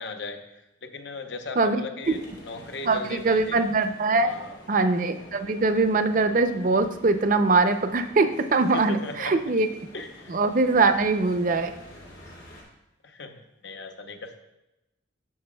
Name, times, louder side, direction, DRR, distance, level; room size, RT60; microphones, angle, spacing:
voice 1, 0.0-3.7 4.2-4.6 8.7-9.4 9.9-10.4 13.0-14.4, left 3 dB, 60° left, 5 dB, 0.8 m, -38 dB
voice 2, 1.6-2.2 2.9-4.3 4.7-9.7 10.3-11.7, right 3 dB, 45° right, 9 dB, 0.5 m, -22 dB
sound 1, 2.0-12.6, equal, 90° left, 2.6 m, -48 dB
12.0 x 7.5 x 2.2 m, 0.94 s
head